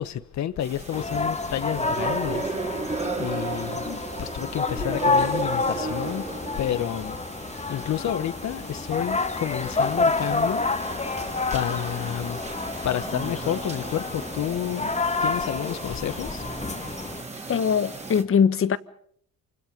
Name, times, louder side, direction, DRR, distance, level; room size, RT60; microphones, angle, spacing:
voice 1, 0.0-3.9 4.2-6.2 6.6-7.2 7.7-10.9 11.5-12.5 12.8-14.9 15.2-16.4, left 10 dB, 65° left, 1.3 m, -30 dB
sound 1, 0.6-18.2, right 3 dB, 20° right, 3.2 m, -35 dB
sound 2, 0.9-17.2, left 3 dB, 20° left, 1.7 m, -29 dB
voice 2, 17.5-18.8, left 7 dB, 45° left, 1.2 m, -22 dB
27.5 x 25.5 x 5.3 m
cardioid pair, 90°, 30 cm